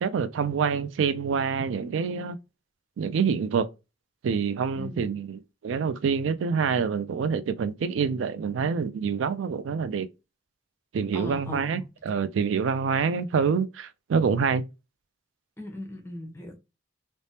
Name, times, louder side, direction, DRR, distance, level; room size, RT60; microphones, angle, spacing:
voice 1, 0.0-2.4 3.0-3.7 4.2-10.1 10.9-11.8 12.1-14.6, right 6 dB, 85° right, 0.3 m, -26 dB
voice 2, 4.8-5.1 11.1-11.9 15.6-16.6, left 1 dB, 15° left, 0.7 m, -38 dB
3.3 x 2.1 x 2.7 m
head